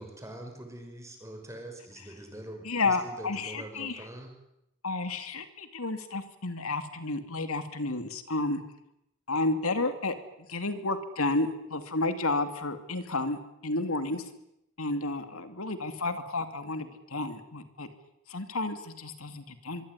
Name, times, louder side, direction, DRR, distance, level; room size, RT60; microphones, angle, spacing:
voice 1, 0.0-4.3, right 1 dB, 15° right, 3 dB, 5.7 m, -44 dB
voice 2, 2.6-4.1 4.8-8.6 9.3-10.1 10.5-14.3 14.8-17.9 18.3-19.9, left 2 dB, 70° left, 9 dB, 2.8 m, -31 dB
24.5 x 24.5 x 9.9 m, 0.83 s
head